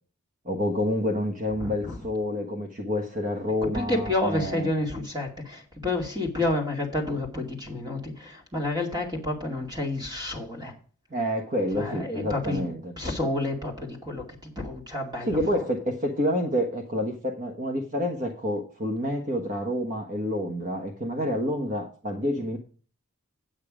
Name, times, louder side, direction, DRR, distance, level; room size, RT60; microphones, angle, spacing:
voice 1, 0.4-4.7 11.1-12.9 15.3-22.6, equal, 35° right, 1.3 m, -28 dB
voice 2, 1.6-2.0 3.6-10.8 11.8-12.7 13.0-15.4, left 2 dB, 20° right, 2.3 m, -30 dB
9.0 x 8.8 x 5.0 m
head